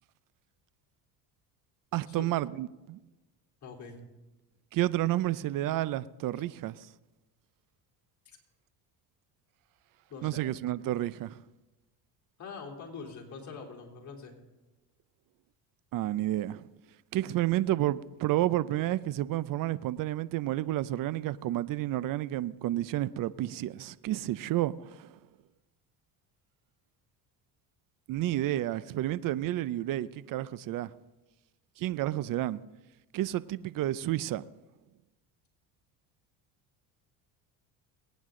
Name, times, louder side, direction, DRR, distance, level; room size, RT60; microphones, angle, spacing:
voice 1, 1.9-3.0 4.7-6.9 10.2-11.4 15.9-16.7 17.1-25.1 28.1-30.9 31.8-32.6 33.1-34.4, right 14 dB, 50° right, 0.6 m, -30 dB
voice 2, 3.6-4.0 8.3-8.4 10.1-10.4 12.4-14.3, left 5 dB, 45° left, 3.4 m, -44 dB
22.5 x 9.5 x 3.8 m
supercardioid pair, 90°, 42 cm